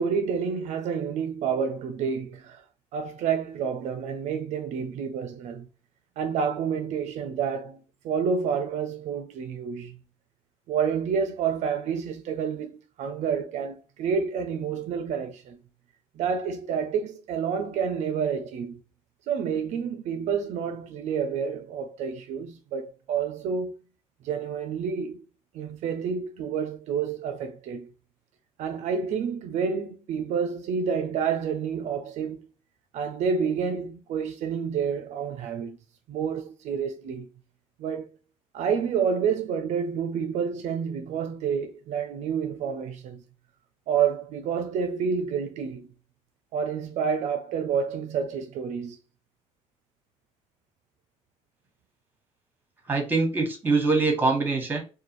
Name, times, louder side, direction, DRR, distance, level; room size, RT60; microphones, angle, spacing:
voice 1, 0.0-2.6 2.9-5.7 6.2-10.0 10.7-15.6 16.2-18.8 19.3-23.7 24.2-25.2 25.5-27.9 28.6-32.4 32.9-35.8 36.1-37.3 37.8-38.1 38.5-43.2 43.9-45.9 46.5-49.0, right 6 dB, 70° right, 0.4 m, -29 dB
voice 2, 52.9-54.8, right 3 dB, 15° right, 1.2 m, -23 dB
2.5 x 2.2 x 2.9 m
cardioid pair, 100°, 12 cm